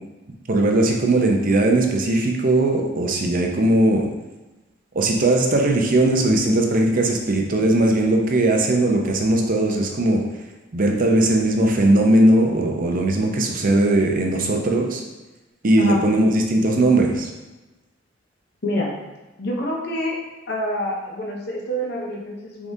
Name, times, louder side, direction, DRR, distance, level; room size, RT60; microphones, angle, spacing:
voice 1, 0.5-4.1 4.9-10.2 10.7-15.0 15.6-17.3, right 1 dB, 45° right, 2 dB, 0.6 m, -19 dB
voice 2, 18.6-18.9 19.4-20.2 20.5-22.7, left 1 dB, 55° left, -2 dB, 0.7 m, -26 dB
4.7 x 3.6 x 2.7 m, 1.1 s
head